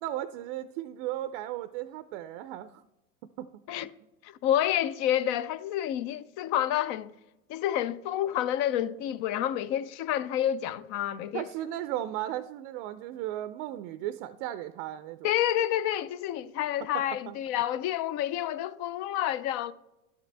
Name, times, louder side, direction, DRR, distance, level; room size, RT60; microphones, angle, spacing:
voice 1, 0.0-2.8 3.4-3.5 11.3-15.3 17.3-17.4, right 13 dB, 50° right, 0.5 m, -35 dB
voice 2, 4.2-7.1 7.5-11.4 15.2-19.7, left 11 dB, 45° left, 0.4 m, -29 dB
11.5 x 6.6 x 3.3 m
supercardioid pair, 120°, 41 cm